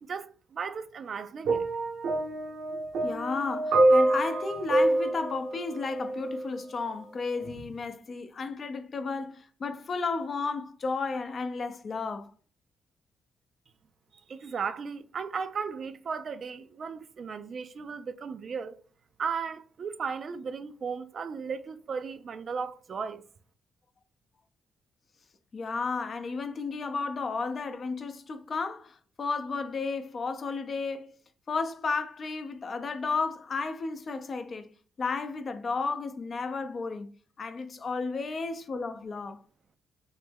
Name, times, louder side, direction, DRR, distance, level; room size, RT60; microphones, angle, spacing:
voice 1, 0.0-1.6 14.3-18.8 19.2-23.2, right 5 dB, 55° right, 0.3 m, -35 dB
sound 1, 1.4-6.6 7.5-7.6, right 2 dB, 85° right, 0.8 m, -26 dB
voice 2, 3.0-12.3 25.5-31.1 31.5-34.7 35.0-37.1 37.4-39.4, left 4 dB, 50° left, 0.5 m, -33 dB
3.2 x 2.1 x 3.3 m
supercardioid pair, 65°, 0 cm